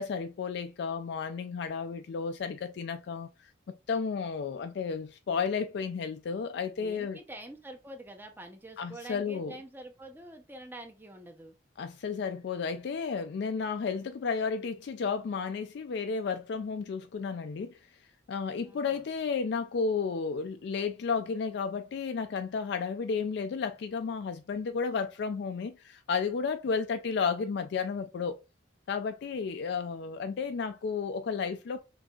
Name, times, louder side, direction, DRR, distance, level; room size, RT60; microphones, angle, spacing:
voice 1, 0.0-7.2 8.8-9.5 11.8-17.8 18.3-28.4 28.9-31.8, left 5 dB, 55° left, 0.3 m, -32 dB
voice 2, 6.8-11.6 18.6-19.1, right 1 dB, 10° right, 0.6 m, -46 dB
5.9 x 2.7 x 2.3 m
head